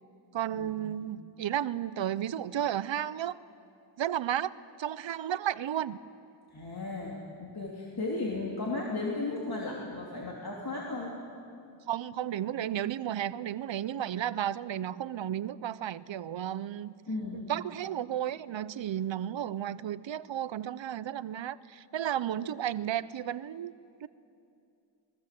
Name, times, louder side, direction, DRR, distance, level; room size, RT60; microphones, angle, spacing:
voice 1, 0.3-3.4 4.0-6.0 11.9-17.0 17.3-23.7 24.0-24.1, right 10 dB, 85° right, 17 dB, 0.7 m, -33 dB
voice 2, 6.5-11.1 17.1-17.6, left 3 dB, 55° left, -3 dB, 3.2 m, -35 dB
27.0 x 20.5 x 7.7 m, 2.6 s
wide cardioid pair, 85°, 44 cm